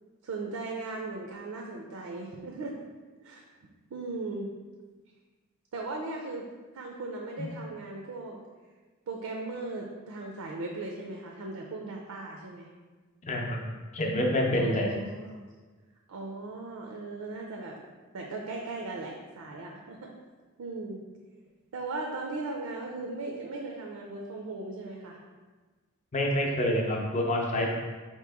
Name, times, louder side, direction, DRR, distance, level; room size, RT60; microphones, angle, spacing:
voice 1, 0.2-2.7 3.2-3.4 3.9-4.5 5.7-6.4 6.7-8.4 9.1-12.7 14.6-15.4 16.1-17.8 18.1-20.1 20.6-21.0 21.7-25.2 27.6-27.7, right 3 dB, 85° right, 1 dB, 0.5 m, -38 dB
voice 2, 13.2-13.6 13.9-14.9 26.1-27.7, left 1 dB, 35° left, 0 dB, 0.5 m, -27 dB
4.3 x 2.9 x 3.4 m, 1.4 s
head